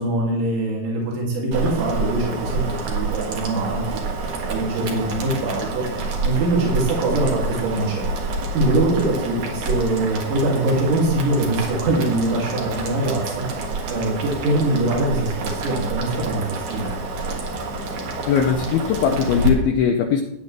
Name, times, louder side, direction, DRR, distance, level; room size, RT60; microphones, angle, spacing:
voice 1, 0.0-8.1 8.5-16.9, right 2 dB, 85° right, -3 dB, 5.0 m, -23 dB
Boiling, 1.5-19.5, right 3 dB, 55° right, 2.9 m, -28 dB
voice 2, 18.3-20.2, left 7 dB, 80° left, 3 dB, 2.3 m, -20 dB
16.0 x 9.8 x 3.4 m, 0.84 s
omnidirectional pair, 5.1 m